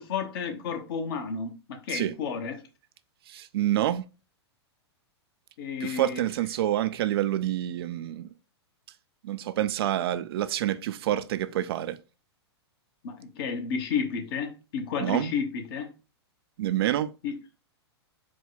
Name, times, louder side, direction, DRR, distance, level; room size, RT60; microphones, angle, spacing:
voice 1, 0.0-2.6 5.6-6.2 13.0-15.9 17.2-17.3, left 6 dB, 55° left, 1.0 m, -32 dB
voice 2, 3.3-4.0 5.8-8.3 9.2-12.0 15.0-15.3 16.6-17.1, right 12 dB, 60° right, 0.4 m, -27 dB
4.5 x 2.2 x 3.9 m
hypercardioid pair, 115°, 14 cm